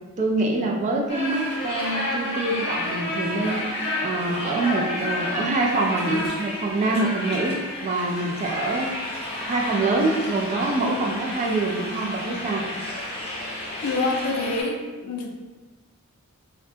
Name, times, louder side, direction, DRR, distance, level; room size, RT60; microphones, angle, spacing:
voice 1, 0.2-8.9 9.4-12.7, right 2 dB, 30° right, 0 dB, 0.3 m, -25 dB
sound 1, 1.1-14.6, left 1 dB, 25° left, 0.6 m, -31 dB
voice 2, 13.8-15.5, left 3 dB, 85° left, 2 dB, 0.4 m, -27 dB
2.5 x 2.1 x 2.6 m, 1.2 s
head